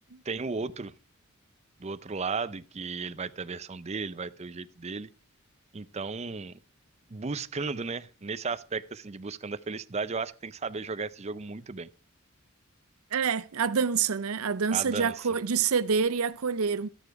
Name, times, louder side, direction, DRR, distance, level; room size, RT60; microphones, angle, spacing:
voice 1, 0.2-0.9 1.8-5.1 5.7-6.6 7.1-11.9 14.7-15.3, right 4 dB, 30° right, 0.5 m, -35 dB
voice 2, 13.1-16.9, right 6 dB, 85° right, 0.6 m, -27 dB
13.0 x 10.0 x 4.7 m
head